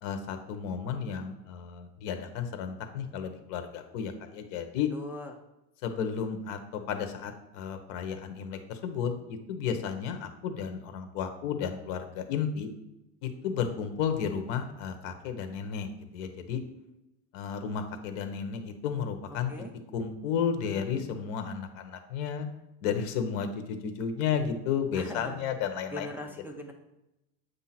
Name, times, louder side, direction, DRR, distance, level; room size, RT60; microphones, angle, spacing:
voice 1, 0.0-4.9 5.8-6.6 6.9-12.7 13.2-16.6 17.3-19.5 19.9-22.5 22.8-26.1, left 7 dB, 75° left, 7 dB, 1.1 m, -33 dB
voice 2, 4.9-5.3 19.5-19.7 24.9-25.4 25.9-26.7, left 1 dB, 5° right, 0 dB, 0.3 m, -40 dB
8.1 x 2.7 x 5.9 m, 0.90 s
cardioid pair, 145°, 38 cm